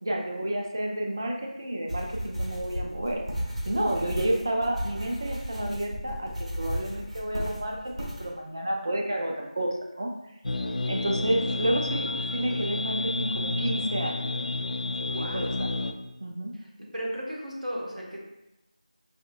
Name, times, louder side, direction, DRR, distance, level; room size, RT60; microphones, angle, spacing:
voice 1, 0.0-3.2 3.7-10.1 10.9-14.3 15.3-15.8 16.2-16.5, right 1 dB, 30° right, 1 dB, 0.4 m, -30 dB
sound 1, 1.9-8.3, equal, 60° right, 1.2 m, -34 dB
sound 2, 10.4-15.9, left 2 dB, 70° left, 0.3 m, -30 dB
voice 2, 15.0-15.6 16.5-18.2, equal, 85° right, -3 dB, 1.2 m, -36 dB
4.9 x 2.9 x 2.3 m, 0.92 s
figure-of-eight pair, 175°, 4 cm